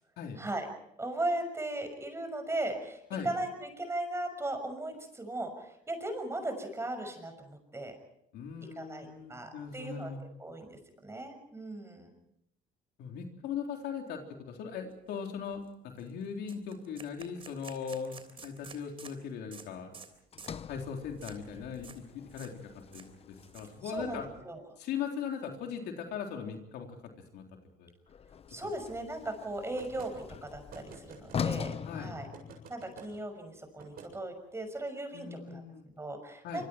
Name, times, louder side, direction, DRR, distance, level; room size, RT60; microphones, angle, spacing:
voice 1, 0.4-0.7 1.0-8.0 8.8-10.1 10.4-12.1 23.8-24.6 28.5-32.3 32.7-35.6 36.0-36.7, right 1 dB, 15° right, 6 dB, 6.0 m, -37 dB
voice 2, 8.3-10.2 13.0-19.9 20.7-24.3 24.8-27.0 27.3-27.4 27.8-27.9 31.9-32.2 35.1-35.8 36.4-36.6, left 7 dB, 80° left, 2 dB, 3.8 m, -39 dB
sound 1, 15.1-15.2 15.5-15.7 16.0-16.1 16.5-19.2 19.5-19.7 19.9-20.1 20.4-20.6 21.2-21.4 21.7-22.0 22.3-22.5 22.8-24.0, right 5 dB, 35° right, 3.4 m, -50 dB
Sliding door, 20.3-24.6 28.1-33.0, left 7 dB, 35° left, 0.7 m, -42 dB
sound 2, 29.8-30.1 30.7-31.6 32.3-33.1 33.8-34.1, right 6 dB, 65° right, 7.6 m, -49 dB
26.0 x 25.5 x 4.6 m, 0.75 s
cardioid pair, 110°, 17 cm